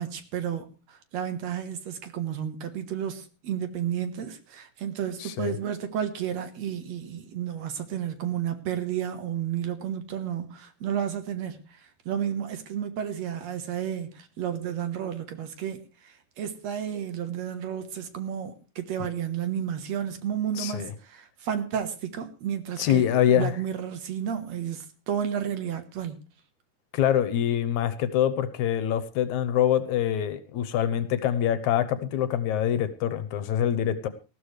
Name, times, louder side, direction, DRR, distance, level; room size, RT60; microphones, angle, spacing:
voice 1, 0.0-11.7 12.1-26.2, right 9 dB, 65° right, 2.4 m, -32 dB
voice 2, 5.2-5.6 20.6-20.9 22.8-23.5 26.9-34.1, left 10 dB, 75° left, 2.2 m, -25 dB
19.5 x 14.0 x 3.3 m
omnidirectional pair, 3.6 m